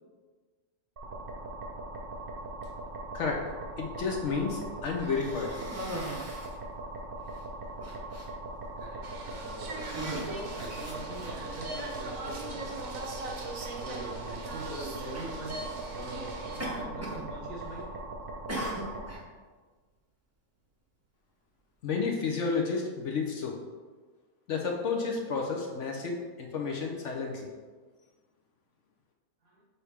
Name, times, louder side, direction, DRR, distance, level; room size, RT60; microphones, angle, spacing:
sound 1, 1.0-19.1, right 2 dB, 40° right, 1.0 m, -40 dB
voice 1, 3.8-5.5 21.8-23.5 24.5-27.5, left 4 dB, 60° left, 1 dB, 1.0 m, -31 dB
Cough, 4.9-6.6 7.3-7.4 7.8-8.3 9.0-9.3 9.7-11.6 12.6-12.7 14.5-14.7 15.1-15.4 16.6-17.3 17.5-18.0 18.5-19.2, right 1 dB, 15° right, 0.6 m, -39 dB
voice 2, 8.8-12.7 13.8-15.6 15.9-17.9 29.4-29.6, right 2 dB, 90° right, -3 dB, 2.2 m, -43 dB
sound 2, 9.0-16.6, right 2 dB, 65° right, 1.2 m, -41 dB
7.0 x 4.2 x 3.5 m, 1.4 s
omnidirectional pair, 1.6 m